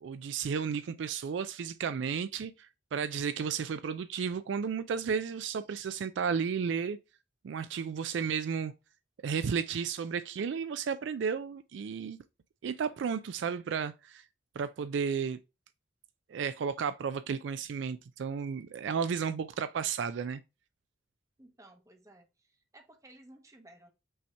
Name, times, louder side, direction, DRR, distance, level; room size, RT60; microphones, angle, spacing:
voice 1, 0.0-7.0 7.4-8.7 9.2-12.2 12.6-14.3 14.6-15.4 16.3-20.4, right 6 dB, 65° right, 0.3 m, -33 dB
voice 2, 21.4-22.5 22.7-23.9, right 1 dB, 15° right, 0.8 m, -56 dB
5.5 x 2.8 x 3.3 m
head